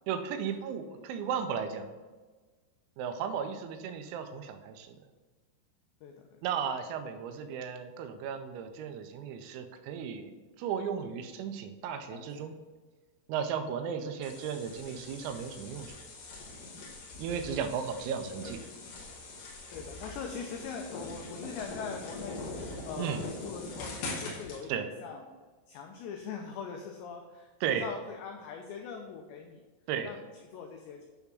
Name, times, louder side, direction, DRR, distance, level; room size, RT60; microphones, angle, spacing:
voice 1, 0.1-1.9 3.0-5.0 6.4-10.3 10.6-12.5 13.3-16.0 17.2-18.6 23.0-23.3 24.7-24.9 27.6-27.9 29.9-30.1, right 7 dB, 85° right, 7 dB, 3.4 m, -35 dB
voice 2, 6.0-6.4 12.1-12.4 14.2-14.3 17.3-17.7 18.4-18.5 19.7-25.2 25.7-29.6 30.0-31.0, left 6 dB, 90° left, 3 dB, 2.5 m, -42 dB
sound 1, 14.2-24.6, left 2 dB, 60° left, 3.4 m, -42 dB
9.8 x 3.5 x 6.9 m, 1.3 s
omnidirectional pair, 6.0 m